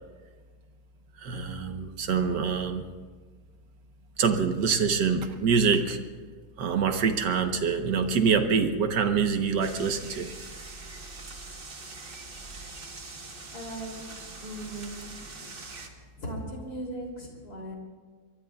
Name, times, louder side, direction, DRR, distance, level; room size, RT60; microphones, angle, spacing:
voice 1, 1.2-2.8 4.2-6.0 6.6-10.3, right 6 dB, 85° right, 7 dB, 1.7 m, -25 dB
sound 1, 9.6-15.9, right 3 dB, 35° right, 1.4 m, -43 dB
voice 2, 13.5-15.2 16.2-17.7, right 1 dB, 65° left, -1 dB, 3.7 m, -38 dB
24.0 x 22.0 x 2.4 m, 1.5 s
omnidirectional pair, 1.8 m